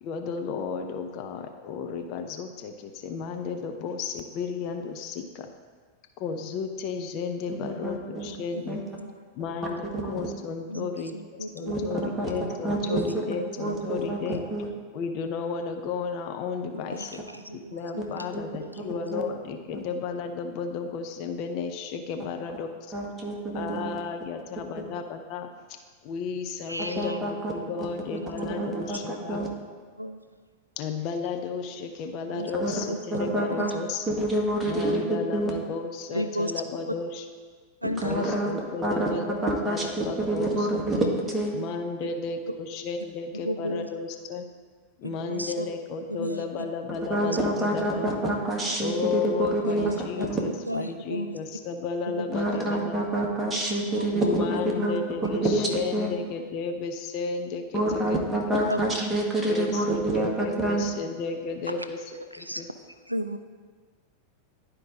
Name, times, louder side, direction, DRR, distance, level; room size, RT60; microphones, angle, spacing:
voice 1, 0.0-5.5 6.2-8.8 9.3-11.1 11.5-14.4 14.9-17.2 17.5-22.7 23.5-25.8 26.0-29.4 30.8-34.0 34.6-37.3 38.0-39.3 39.6-40.8 41.5-44.5 45.0-48.1 48.8-53.0 54.1-58.2 58.5-58.6 59.5-62.7, left 5 dB, 40° left, 5 dB, 0.6 m, -33 dB
voice 2, 7.5-8.3 8.7-8.8 10.0-10.3 11.7-12.3 12.6-13.0 13.6-14.2 14.5-14.7 18.3-18.4 19.1-19.2 19.7-19.8 22.9-23.9 27.0-27.3 28.3-29.5 32.6-32.7 33.1-33.7 34.1-35.5 38.0-38.5 38.8-39.1 39.4-41.6 47.1-49.8 50.3-50.4 52.3-54.9 55.4-56.1 57.7-60.9, right 1 dB, 10° right, -2 dB, 1.7 m, -27 dB
voice 3, 10.7-11.9 12.9-13.0 13.6-14.1 16.7-18.3 18.6-18.9 26.7-27.2 27.8-27.9 28.2-28.3 28.7-29.0 30.0-30.2 32.2-32.5 32.9-33.0 33.4-33.5 36.1-36.5 37.8-38.3 43.3-43.9 45.0-45.7 46.1-46.4 47.3-47.4 48.0-48.1 49.6-50.3 50.7-51.4 52.1-52.5 53.9-54.4 58.7-58.8 62.1-62.6 63.1-63.4, equal, 85° right, 9 dB, 0.3 m, -34 dB
11.0 x 4.5 x 3.7 m, 1.5 s
figure-of-eight pair, 90°, 0 cm